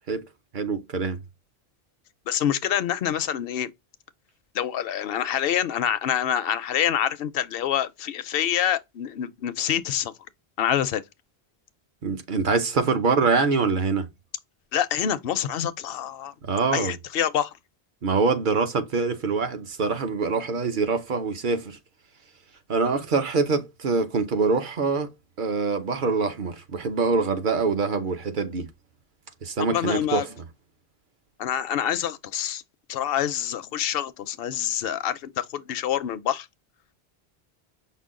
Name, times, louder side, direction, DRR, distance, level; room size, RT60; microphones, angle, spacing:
voice 1, 0.5-1.2 12.0-14.1 16.5-17.0 18.0-21.8 22.7-25.1 25.4-28.7 29.4-30.3, right 4 dB, 55° right, 0.9 m, -24 dB
voice 2, 2.3-3.7 4.5-10.1 10.6-11.0 14.7-16.3 16.7-17.5 29.6-30.3 31.4-32.6 32.9-36.5, left 10 dB, 70° left, 0.7 m, -26 dB
5.7 x 2.2 x 3.6 m
omnidirectional pair, 1.0 m